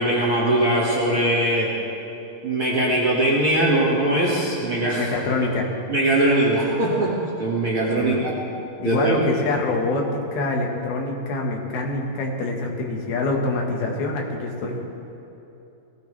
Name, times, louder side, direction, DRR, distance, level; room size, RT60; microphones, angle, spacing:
voice 1, 0.0-1.7 2.4-5.1 5.9-7.1 7.4-8.3 8.8-9.1, right 1 dB, 40° right, -6 dB, 2.2 m, -21 dB
voice 2, 5.0-5.7 8.0-8.3 8.8-14.8, left 2 dB, 75° left, 0 dB, 3.4 m, -25 dB
20.5 x 16.0 x 3.3 m, 2.9 s
omnidirectional pair, 4.4 m